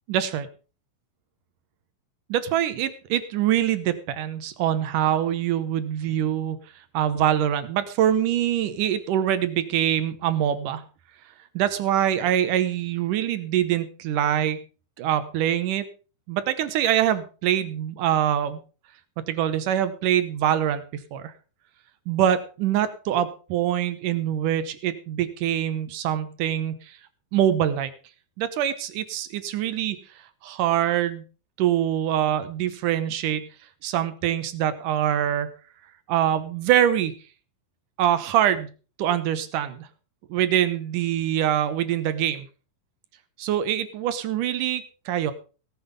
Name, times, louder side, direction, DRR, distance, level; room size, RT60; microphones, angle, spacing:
voice 1, 0.1-0.5 2.3-6.6 6.9-10.8 11.6-14.6 15.0-15.9 16.3-18.6 19.3-20.8 21.1-21.3 22.1-27.0 27.3-27.9 28.4-30.0 30.4-31.2 31.6-33.4 33.8-35.5 36.1-37.1 38.0-38.7 39.0-39.9 40.3-42.5 43.4-45.3, right 10 dB, 80° right, 13 dB, 2.5 m, -24 dB
18.0 x 7.8 x 5.2 m, 0.36 s
omnidirectional pair, 3.8 m